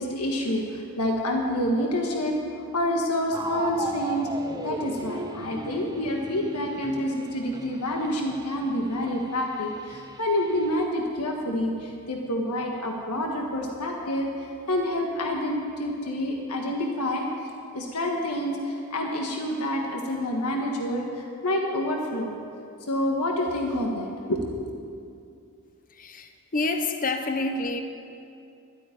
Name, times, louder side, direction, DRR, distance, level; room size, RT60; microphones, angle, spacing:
voice 1, 0.0-4.3 4.6-17.3 17.7-22.4 22.9-24.6, left 1 dB, 90° left, 1 dB, 1.6 m, -28 dB
sound 1, 3.3-10.8, right 2 dB, 15° right, 0.8 m, -37 dB
voice 2, 25.9-27.8, left 3 dB, 40° left, 6 dB, 0.8 m, -28 dB
12.5 x 9.0 x 9.2 m, 2.5 s
head